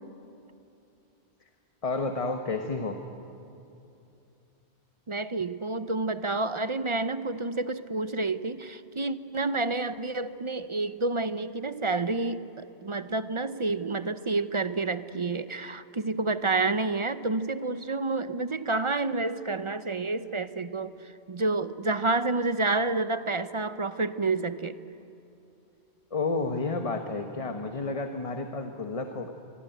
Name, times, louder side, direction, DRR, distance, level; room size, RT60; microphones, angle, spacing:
voice 1, 1.8-3.0 26.1-29.3, left 3 dB, 30° left, 5 dB, 1.2 m, -31 dB
voice 2, 5.1-24.8, right 3 dB, 35° right, 12 dB, 0.6 m, -29 dB
24.0 x 23.5 x 9.2 m, 2.7 s
omnidirectional pair, 1.1 m